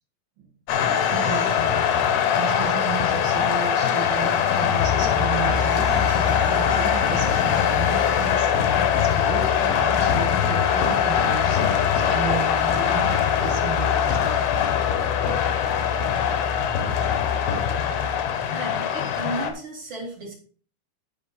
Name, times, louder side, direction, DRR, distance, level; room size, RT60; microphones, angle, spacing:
sound 1, 0.7-19.5, left 8 dB, 70° left, 2.6 m, -22 dB
voice 1, 1.1-1.6 2.4-14.5 17.5-17.6, right 8 dB, 60° right, 5 dB, 2.9 m, -34 dB
voice 2, 18.5-20.3, right 2 dB, 45° right, -2 dB, 1.8 m, -34 dB
11.5 x 6.0 x 4.0 m, 0.43 s
omnidirectional pair, 5.2 m